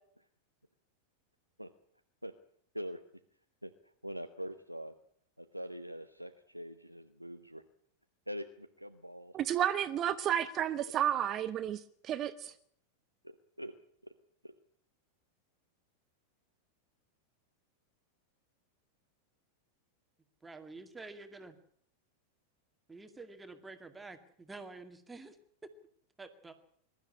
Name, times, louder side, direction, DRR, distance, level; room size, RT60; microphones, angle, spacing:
voice 1, 4.0-4.9 5.5-7.6 8.3-9.3 13.2-13.7 14.4-14.5, equal, 90° right, 1.0 m, -43 dB
voice 2, 9.3-12.5, right 10 dB, 30° right, 1.0 m, -32 dB
voice 3, 20.4-21.6 22.9-25.4 26.2-26.5, right 3 dB, 10° right, 2.1 m, -49 dB
22.5 x 13.0 x 9.9 m
figure-of-eight pair, 90°, 0 cm